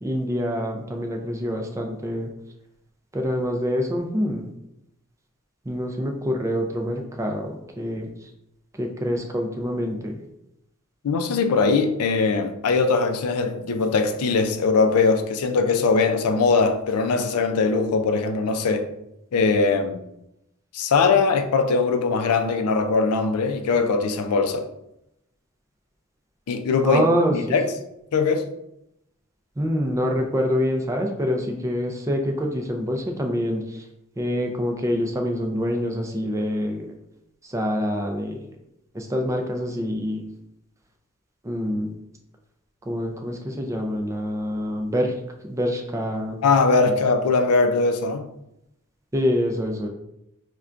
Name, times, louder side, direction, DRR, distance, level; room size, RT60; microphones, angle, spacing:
voice 1, 0.0-2.3 3.1-4.5 5.7-8.1 8.8-10.2 26.8-27.4 29.6-33.8 34.2-36.9 37.4-38.4 38.9-40.2 41.4-41.9 42.9-45.1 45.4-46.4 46.9-47.0 49.1-49.9, equal, 15° right, 0.4 m, -26 dB
voice 2, 11.0-18.9 19.3-20.0 20.7-24.7 26.5-27.0 27.3-27.7 28.1-28.5 46.4-48.3, left 4 dB, 80° left, 0.4 m, -21 dB
5.6 x 2.2 x 2.4 m
head